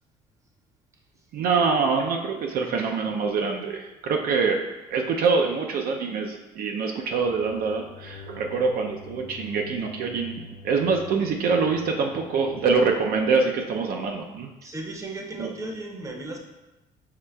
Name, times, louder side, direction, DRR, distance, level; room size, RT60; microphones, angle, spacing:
voice 1, 1.3-4.6 4.9-10.3 10.6-14.5 15.4-15.5, right 4 dB, 60° right, 2 dB, 0.5 m, -25 dB
sound 1, 7.1-14.4, left 5 dB, 50° left, 0.5 m, -46 dB
voice 2, 14.6-16.4, right 2 dB, 20° right, 1 dB, 0.7 m, -35 dB
6.6 x 3.1 x 2.2 m, 1.0 s
cardioid pair, 110°, 17 cm